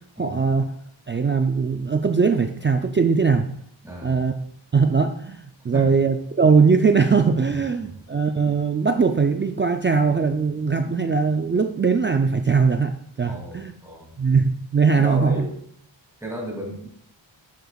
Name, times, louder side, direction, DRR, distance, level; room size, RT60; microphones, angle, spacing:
voice 1, 0.2-0.6 1.1-3.5 4.0-4.3 4.7-13.7 14.2-15.5, right 5 dB, 25° right, 6 dB, 0.3 m, -20 dB
voice 2, 3.8-4.2 5.7-5.9 7.8-7.9 13.2-14.1 14.9-15.5 16.2-16.9, right 1 dB, 5° right, -2 dB, 2.4 m, -34 dB
11.5 x 7.8 x 2.3 m, 0.67 s
wide cardioid pair, 150°, 47 cm